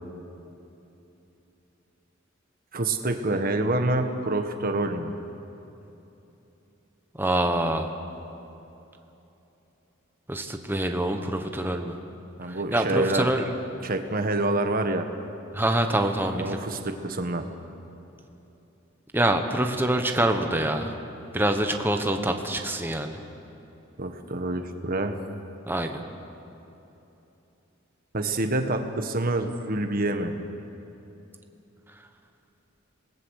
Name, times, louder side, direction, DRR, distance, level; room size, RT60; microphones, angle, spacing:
voice 1, 2.7-5.1 12.4-13.3 13.8-15.1 16.3-17.5 24.0-25.2 28.1-30.3, right 2 dB, 45° right, 6 dB, 1.5 m, -27 dB
voice 2, 7.2-7.9 10.3-12.0 12.5-13.4 15.5-16.6 19.1-20.9 21.3-23.2 25.7-26.0, right 1 dB, 10° right, 5 dB, 1.2 m, -25 dB
27.0 x 19.5 x 6.6 m, 3.0 s
head